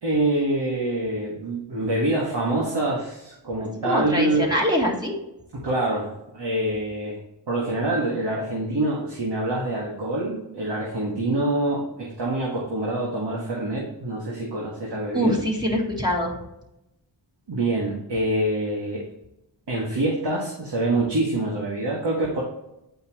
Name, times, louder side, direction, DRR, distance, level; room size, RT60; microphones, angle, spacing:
voice 1, 0.0-4.5 5.5-7.2 7.5-15.4 17.5-19.0 19.7-22.4, right 1 dB, 60° right, -3 dB, 1.7 m, -25 dB
voice 2, 3.8-5.1 15.1-16.4, equal, 10° right, -2 dB, 1.8 m, -23 dB
8.4 x 5.3 x 3.0 m, 0.88 s
wide cardioid pair, 65°, 45 cm